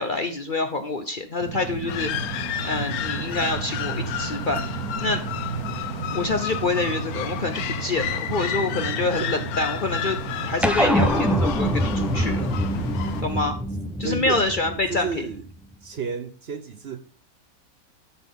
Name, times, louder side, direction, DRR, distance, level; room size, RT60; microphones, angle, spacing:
voice 1, 0.0-2.4 2.6-5.2 6.1-10.2 10.4-12.5 13.2-13.6 14.0-15.2, left 3 dB, 45° left, 0.7 m, -27 dB
sound 1, 1.4-13.4, right 8 dB, 75° right, 1.2 m, -34 dB
sound 2, 1.9-13.2, left 11 dB, 85° left, 1.1 m, -31 dB
voice 2, 8.5-9.3 14.0-14.4 14.9-15.5 15.8-17.0, right 6 dB, 50° right, 0.8 m, -32 dB
sound 3, 10.6-15.4, equal, ahead, 0.3 m, -24 dB
12.5 x 4.1 x 5.2 m
omnidirectional pair, 1.5 m